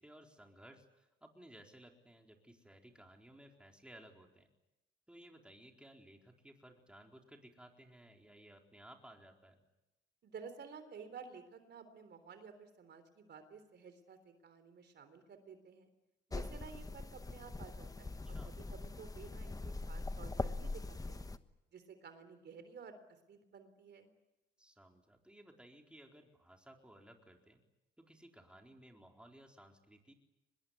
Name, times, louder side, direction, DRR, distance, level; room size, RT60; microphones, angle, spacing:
voice 1, 0.0-4.5 5.1-9.6 18.2-18.5 24.6-27.6 28.0-30.1, right 1 dB, 5° right, 2 dB, 4.2 m, -58 dB
voice 2, 10.2-15.9 16.3-21.3 21.7-23.0 23.3-24.1, right 6 dB, 60° right, 10 dB, 3.7 m, -53 dB
sound 1, 16.3-21.4, left 2 dB, 15° left, 1.2 m, -42 dB
24.0 x 21.0 x 9.6 m, 0.93 s
cardioid pair, 90°, 20 cm